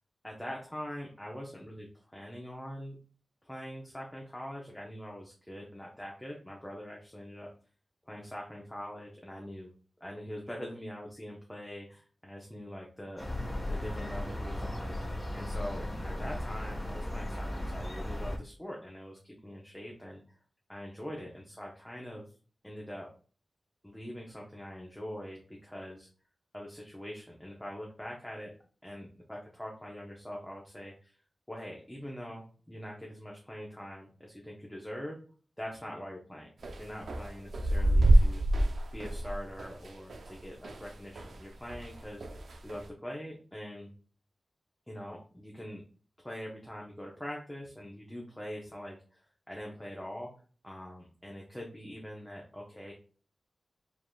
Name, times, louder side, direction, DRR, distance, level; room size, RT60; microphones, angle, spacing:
voice 1, 0.2-3.0 3.4-7.5 8.1-9.7 10.0-13.3 13.7-20.2 20.7-22.2 22.6-23.1 23.8-26.1 26.5-28.5 28.8-31.1 31.5-35.2 35.6-38.4 38.9-43.9 44.9-45.8 46.2-49.2 49.5-50.3 50.6-52.9, equal, 5° left, -2 dB, 0.8 m, -43 dB
sound 1, 13.2-18.4, left 1 dB, 30° left, 1.2 m, -36 dB
sound 2, 36.6-41.4 41.7-42.9, right 1 dB, 90° right, 0.5 m, -27 dB
5.0 x 3.7 x 2.3 m, 0.41 s
wide cardioid pair, 120°, 0 cm